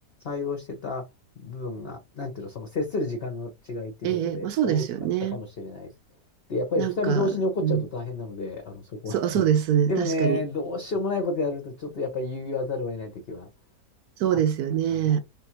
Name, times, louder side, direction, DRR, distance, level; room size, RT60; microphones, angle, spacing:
voice 1, 0.2-1.1 1.4-4.9 5.2-5.9 6.5-9.4 9.9-13.5 14.3-14.4 14.9-15.2, left 2 dB, 45° left, 1.0 m, -30 dB
voice 2, 4.0-5.4 6.8-7.3 7.6-7.8 9.1-10.4 14.2-15.2, right 9 dB, 70° right, 1.2 m, -24 dB
3.5 x 3.5 x 2.9 m
omnidirectional pair, 1.7 m